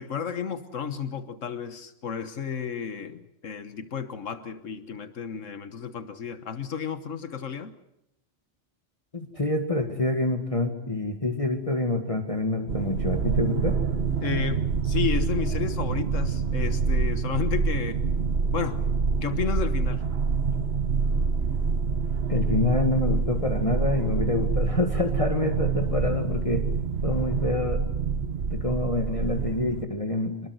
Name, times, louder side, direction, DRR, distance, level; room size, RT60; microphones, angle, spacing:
voice 1, 0.0-7.7 14.2-18.0 18.5-18.8 19.2-20.0, left 7 dB, 85° left, 10 dB, 1.6 m, -32 dB
voice 2, 9.1-13.8 22.3-26.7 27.0-27.8 28.5-30.5, left 2 dB, 25° left, 4 dB, 2.1 m, -27 dB
sound 1, 12.7-29.8, right 5 dB, 55° right, 1.4 m, -26 dB
27.5 x 21.0 x 8.0 m, 0.80 s
omnidirectional pair, 1.3 m